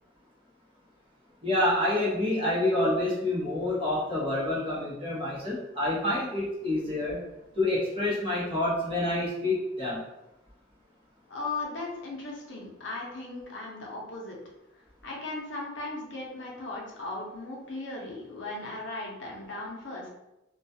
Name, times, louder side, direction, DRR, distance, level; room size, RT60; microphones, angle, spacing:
voice 1, 1.4-7.2 7.6-10.0, left 1 dB, 30° right, -7 dB, 0.9 m, -27 dB
voice 2, 11.3-14.4 15.0-20.1, left 2 dB, 65° left, -2 dB, 0.6 m, -37 dB
2.3 x 2.2 x 2.6 m, 0.94 s
head